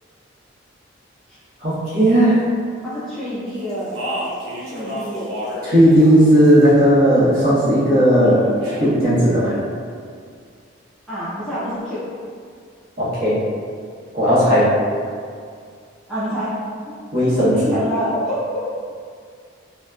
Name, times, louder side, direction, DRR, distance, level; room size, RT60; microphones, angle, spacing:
voice 1, 1.6-2.4 5.6-8.5 8.8-9.5 13.0-13.4 14.1-14.7 17.1-17.8, equal, 45° right, -11 dB, 0.9 m, -15 dB
voice 2, 2.8-3.9 4.6-5.3 11.1-12.0 16.1-16.6 16.9-17.0 17.5-18.6, equal, ahead, -13 dB, 0.4 m, -26 dB
Speech, 3.7-5.6 5.9-6.8 8.2-8.9, equal, 75° right, 0.6 m, -30 dB
2.8 x 2.0 x 2.3 m, 2.2 s
head